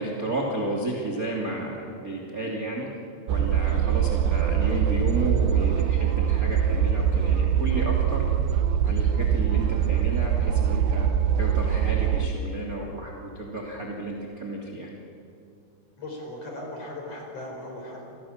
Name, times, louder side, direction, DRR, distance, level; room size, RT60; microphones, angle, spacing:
voice 1, 0.0-2.9 3.3-8.2 8.8-11.1 11.4-14.9, right 2 dB, 25° right, 0 dB, 1.9 m, -32 dB
sound 1, 3.3-12.3, right 9 dB, 80° right, 2.6 m, -23 dB
voice 2, 16.0-18.0, left 1 dB, 35° left, 1 dB, 5.2 m, -37 dB
28.0 x 19.5 x 7.3 m, 2.5 s
omnidirectional pair, 5.6 m